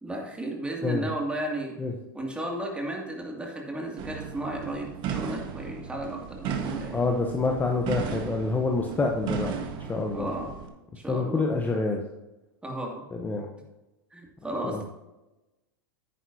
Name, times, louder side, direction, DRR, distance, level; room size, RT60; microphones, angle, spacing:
voice 1, 0.0-1.8 2.1-6.9 10.1-10.5 11.0-11.5 12.6-13.0 14.1-14.8, right 1 dB, 10° right, 0 dB, 2.5 m, -34 dB
sound 1, 4.0-10.7, right 7 dB, 45° right, 1.4 m, -35 dB
voice 2, 6.9-10.3 11.1-12.0 13.1-13.5 14.6-14.8, left 3 dB, 15° left, 2 dB, 1.0 m, -27 dB
9.9 x 9.4 x 2.8 m, 1.0 s
hypercardioid pair, 100°, 12 cm